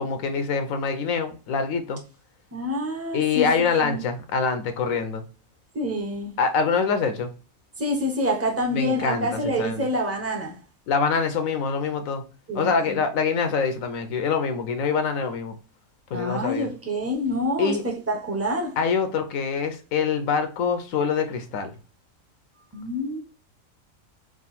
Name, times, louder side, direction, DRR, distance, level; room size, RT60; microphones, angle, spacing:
voice 1, 0.0-2.0 3.1-5.2 6.4-7.3 8.7-9.9 10.9-12.2 12.5-15.6 16.1-16.7 17.6-17.8 18.8-21.7, left 5 dB, 85° left, 1.1 m, -25 dB
voice 2, 2.5-3.5 3.8-4.0 5.7-6.3 7.8-10.6 12.5-13.0 16.1-18.8 22.7-23.2, equal, 15° right, 0.7 m, -27 dB
3.7 x 2.4 x 4.0 m
omnidirectional pair, 1.4 m